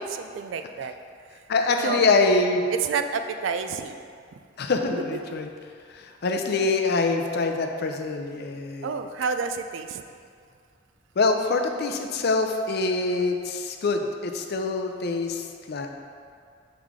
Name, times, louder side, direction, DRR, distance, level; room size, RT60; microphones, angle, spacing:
voice 1, 0.1-0.9 1.7-2.0 2.8-4.0 8.8-10.0, right 5 dB, 75° right, 8 dB, 0.3 m, -29 dB
voice 2, 1.5-2.6 4.6-5.5 5.9-8.9 11.2-15.9, left 3 dB, 55° left, 4 dB, 0.5 m, -25 dB
5.6 x 4.8 x 3.6 m, 2.2 s
head